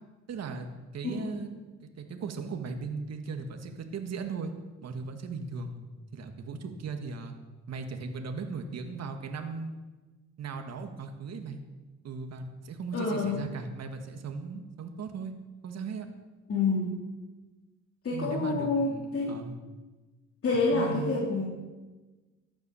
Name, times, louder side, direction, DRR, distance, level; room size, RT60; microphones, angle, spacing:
voice 1, 0.3-0.7 0.9-1.5 2.0-4.5 4.8-5.8 6.1-7.3 7.7-9.7 10.4-11.6 12.0-15.3 15.6-16.1 18.1-19.6 20.7-21.2, right 4 dB, 60° right, 5 dB, 1.8 m, -37 dB
voice 2, 1.0-1.4 12.9-13.4 16.5-17.0 18.0-19.3 20.4-21.4, left 3 dB, 50° left, -4 dB, 3.4 m, -28 dB
14.0 x 10.5 x 7.0 m, 1.2 s
cardioid pair, 90°, 30 cm